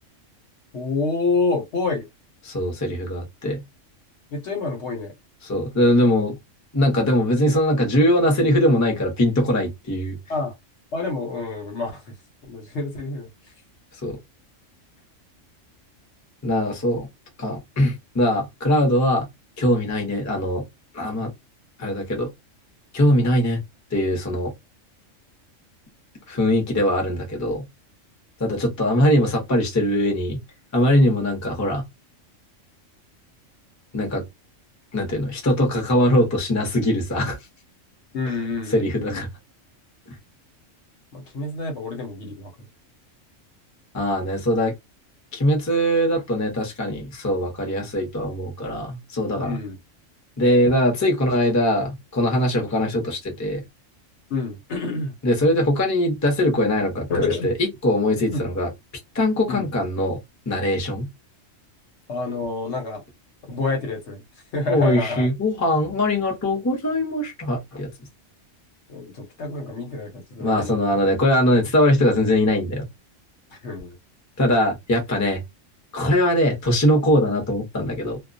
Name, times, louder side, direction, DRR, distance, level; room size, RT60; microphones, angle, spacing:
voice 1, 0.7-2.1 4.3-5.1 10.3-10.5 10.9-12.2 12.4-13.3 38.1-39.2 41.1-42.7 49.3-49.8 54.3-55.1 57.1-57.5 58.3-58.5 59.5-59.7 62.1-63.0 63.5-64.2 64.5-65.3 68.9-71.0 73.5-74.0, left 3 dB, 65° left, 1.0 m, -28 dB
voice 2, 2.4-3.6 5.4-6.4 6.7-10.2 14.0-14.2 16.4-17.1 17.4-19.3 19.6-20.6 20.9-21.3 21.8-22.3 22.9-23.6 23.9-24.5 26.3-27.6 28.4-30.4 30.7-31.8 33.9-34.2 34.9-37.4 38.7-39.3 40.1-40.2 43.9-44.7 45.3-49.6 50.4-53.6 55.2-57.5 57.8-58.7 59.1-60.2 60.5-61.1 64.7-67.9 70.4-72.9 74.4-75.4 75.9-78.2, left 1 dB, 20° left, 0.6 m, -21 dB
2.2 x 2.2 x 2.5 m
omnidirectional pair, 1.3 m